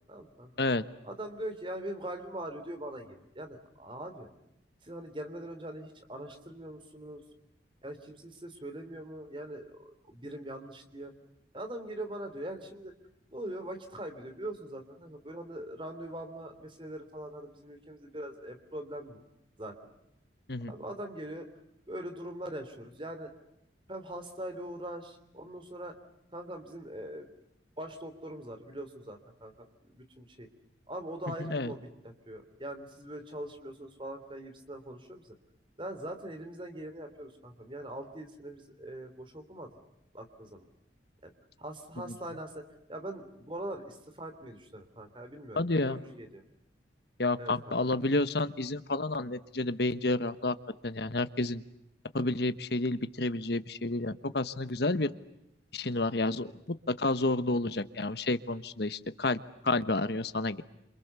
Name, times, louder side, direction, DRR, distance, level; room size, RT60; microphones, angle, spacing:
voice 1, 0.1-0.5 1.0-4.3 4.8-7.2 7.8-11.1 11.5-12.9 13.3-19.2 19.6-19.9 20.6-21.5 21.9-23.3 23.9-26.0 26.3-27.3 27.8-30.5 30.9-35.3 35.8-39.7 40.1-40.6 41.2-41.3 41.6-46.4 47.4-47.8, right 1 dB, 25° right, 7 dB, 3.2 m, -42 dB
voice 2, 45.6-46.0 47.2-50.6 50.8-51.6 52.1-55.1 55.7-56.5 56.9-59.4 59.6-60.6, left 2 dB, 60° left, 12 dB, 1.2 m, -30 dB
29.0 x 27.5 x 6.9 m, 0.84 s
head